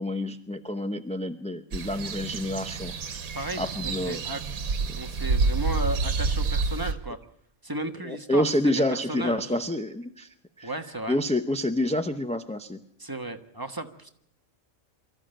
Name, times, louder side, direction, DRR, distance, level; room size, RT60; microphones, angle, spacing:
voice 1, 0.0-2.9 3.6-4.2 4.9-5.0 8.0-12.8, left 1 dB, 10° left, 7 dB, 0.5 m, -28 dB
sound 1, 1.7-6.9, right 4 dB, 85° right, 1.6 m, -28 dB
voice 2, 3.3-4.4 4.9-7.2 7.6-8.5 9.1-9.4 10.6-11.2 13.0-14.1, right 1 dB, 15° right, 6 dB, 1.3 m, -34 dB
24.0 x 14.0 x 9.0 m, 0.71 s
omnidirectional pair, 1.4 m